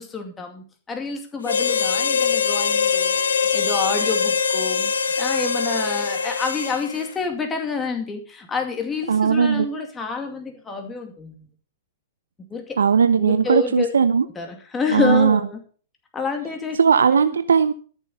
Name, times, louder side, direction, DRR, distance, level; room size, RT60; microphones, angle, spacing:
voice 1, 0.0-3.2 3.5-4.9 5.2-11.3 12.5-12.8 13.2-13.9 14.4-15.6 16.1-16.8, left 4 dB, 15° left, 4 dB, 2.3 m, -28 dB
Harmonica, 1.4-7.1, left 6 dB, 75° left, 1.3 m, -22 dB
voice 2, 9.1-9.7 12.8-14.2 14.9-15.4 16.8-17.7, right 6 dB, 75° right, 12 dB, 0.6 m, -17 dB
14.0 x 7.2 x 5.4 m, 0.41 s
figure-of-eight pair, 110°, 0 cm